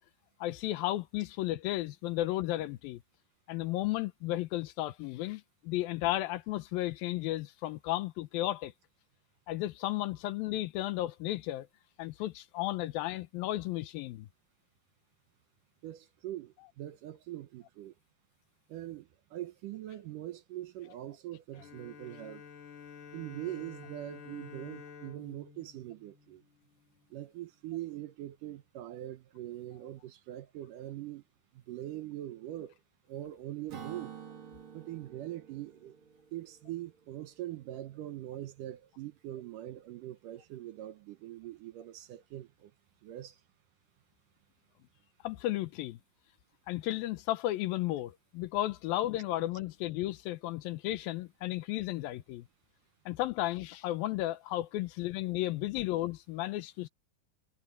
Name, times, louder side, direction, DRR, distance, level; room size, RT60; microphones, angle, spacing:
voice 1, 0.4-3.0 3.5-8.7 9.5-11.7 12.0-14.3 45.2-46.0 46.7-52.5 53.1-56.9, left 15 dB, 80° left, 2.5 m, -34 dB
voice 2, 15.8-17.9 18.7-22.4 23.1-26.4 27.1-31.2 31.5-32.7 33.1-34.1 34.7-36.0 36.3-42.7 43.0-43.4, right 14 dB, 70° right, 2.2 m, -42 dB
Bowed string instrument, 21.5-27.0, left 6 dB, 60° left, 4.7 m, -51 dB
Acoustic guitar / Strum, 33.7-37.3, right 8 dB, 40° right, 2.6 m, -49 dB
omnidirectional pair, 4.3 m